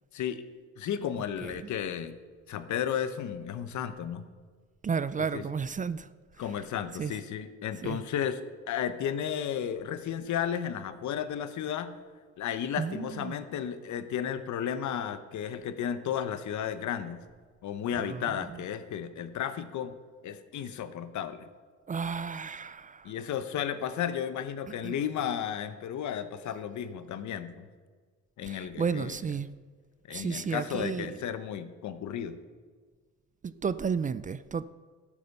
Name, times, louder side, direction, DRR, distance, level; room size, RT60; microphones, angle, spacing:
voice 1, 0.8-2.2 2.5-4.2 5.3-5.4 6.4-8.4 8.7-11.9 12.4-17.2 17.6-19.9 20.2-21.5 23.0-27.7 28.4-29.2 30.1-32.4, left 9 dB, 70° left, 0.9 m, -33 dB
voice 2, 4.8-6.1 7.0-7.1 7.8-8.0 12.8-13.4 18.0-18.6 21.9-23.2 24.8-25.0 28.4-29.5 30.1-31.2 33.4-34.6, right 6 dB, 25° right, 0.4 m, -33 dB
12.5 x 8.5 x 5.4 m
cardioid pair, 90°, 30 cm